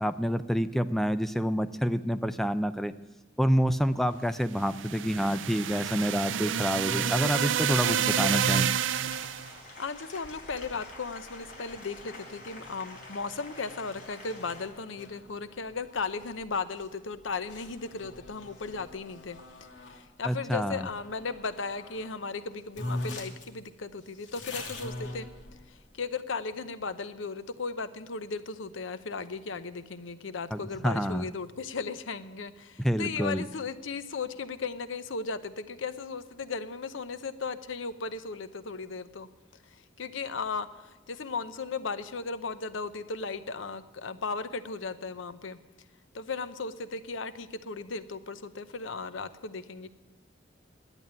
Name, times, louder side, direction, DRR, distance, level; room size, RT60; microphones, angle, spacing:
voice 1, 0.0-2.9 3.4-8.7 20.2-20.9 30.5-31.2 32.8-33.4, equal, ahead, 10 dB, 0.4 m, -28 dB
sound 1, 4.6-9.5, right 8 dB, 80° right, 0.4 m, -28 dB
Applause, 5.5-14.7, left 2 dB, 45° left, 4.2 m, -49 dB
sound 2, 6.8-20.0 20.7-22.1 22.4-22.5 22.7-25.9, left 2 dB, 65° left, 2.6 m, -44 dB
voice 2, 9.8-19.4 19.8-25.3 25.7-39.3 39.7-45.6 46.1-49.9, left 4 dB, 90° left, 12 dB, 0.8 m, -36 dB
10.5 x 9.0 x 9.5 m, 1.2 s
head